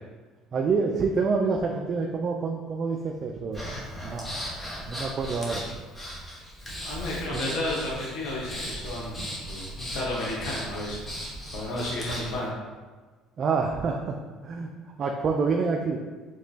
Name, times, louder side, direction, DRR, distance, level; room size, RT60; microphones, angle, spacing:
voice 1, 0.5-3.6 4.0-4.4 4.9-5.6 7.3-7.6 13.4-14.2 14.4-14.7 15.0-16.0, right 4 dB, 45° right, 2 dB, 0.4 m, -27 dB
Breathing, 3.5-12.4, equal, 15° left, 1.1 m, -37 dB
voice 2, 6.8-11.0 11.5-12.5, left 1 dB, 70° left, -4 dB, 1.0 m, -32 dB
6.4 x 2.9 x 2.8 m, 1.4 s
cardioid pair, 115°, 0 cm